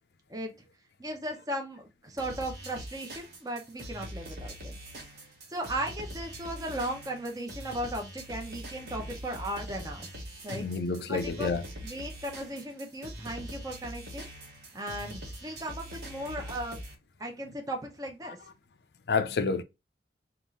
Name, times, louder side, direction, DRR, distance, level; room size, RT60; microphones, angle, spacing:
voice 1, 1.0-4.8 5.5-10.1 10.4-10.6 11.1-14.3 14.7-16.8 17.2-18.4, right 1 dB, 20° right, 0.8 m, -36 dB
sound 1, 2.2-16.9, equal, 65° right, 1.3 m, -43 dB
voice 2, 10.5-11.6 19.1-19.6, left 4 dB, 70° left, 0.5 m, -29 dB
3.5 x 2.5 x 4.0 m
head